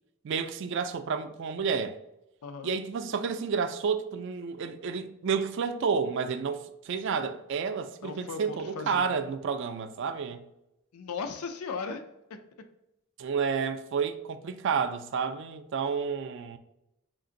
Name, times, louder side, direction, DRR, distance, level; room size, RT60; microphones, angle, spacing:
voice 1, 0.2-2.0 2.6-10.4 13.2-16.6, right 6 dB, 55° right, 0.3 m, -30 dB
voice 2, 2.4-2.7 8.0-9.0 10.9-12.0, left 5 dB, 90° left, 0.4 m, -37 dB
3.7 x 2.5 x 3.8 m
head